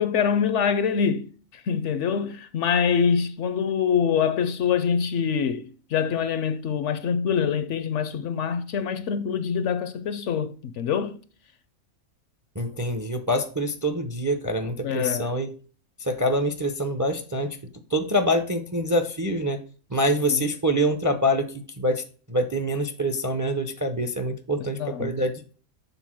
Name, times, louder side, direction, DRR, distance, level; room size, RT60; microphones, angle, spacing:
voice 1, 0.0-11.1 14.8-15.4 20.3-20.4 24.6-25.2, left 7 dB, 65° left, 0.8 m, -25 dB
voice 2, 12.6-15.5 16.0-17.5 17.9-19.6 19.9-21.5 21.8-22.0 22.3-25.5, equal, 25° right, 0.4 m, -25 dB
6.9 x 3.8 x 6.1 m
omnidirectional pair, 1.4 m